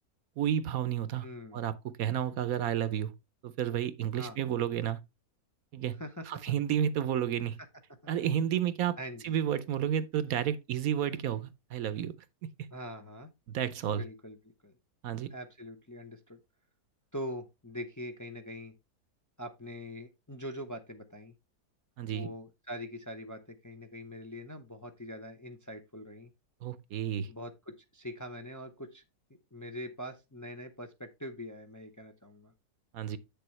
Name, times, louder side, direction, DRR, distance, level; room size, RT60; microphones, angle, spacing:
voice 1, 0.4-1.2 1.5-3.1 3.4-5.0 5.7-6.0 6.3-7.6 8.1-9.0 9.2-12.1 13.5-14.0 15.0-15.3 22.0-22.3 26.6-27.3 32.9-33.2, right 9 dB, 70° right, 1.0 m, -31 dB
voice 2, 1.2-1.6 4.2-4.4 6.0-6.4 8.0-8.1 9.0-9.4 12.7-13.3 13.9-14.4 14.6-14.7 15.3-16.4 17.1-18.7 19.4-21.3 22.1-26.3 27.3-29.0 29.5-32.5, equal, 25° left, 0.4 m, -43 dB
8.4 x 6.9 x 3.1 m
omnidirectional pair, 1.7 m